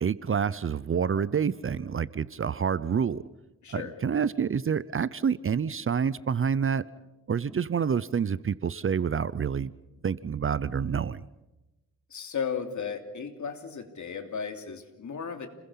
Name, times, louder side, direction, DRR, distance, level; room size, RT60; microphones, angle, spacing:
voice 1, 0.0-3.2 3.7-6.8 7.3-9.7 10.0-11.2, right 7 dB, 40° right, 18 dB, 0.7 m, -28 dB
voice 2, 3.6-3.9 12.1-15.5, left 6 dB, 65° left, 6 dB, 3.1 m, -35 dB
30.0 x 21.5 x 5.7 m, 1.0 s
cardioid pair, 100°, 31 cm